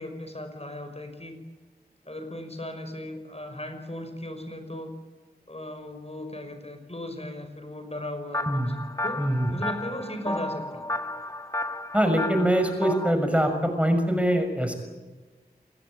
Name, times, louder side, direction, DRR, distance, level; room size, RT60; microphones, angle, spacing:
voice 1, 0.0-1.4 2.1-4.9 5.5-8.6 9.0-9.2 9.5-10.8, left 1 dB, 40° left, 7 dB, 5.7 m, -37 dB
sound 1, 8.3-13.1, left 1 dB, 20° left, 1.7 m, -32 dB
voice 2, 9.2-9.5 11.9-14.8, equal, 5° right, 6 dB, 6.3 m, -23 dB
28.5 x 21.5 x 8.9 m, 1.3 s
wide cardioid pair, 40°, 17 cm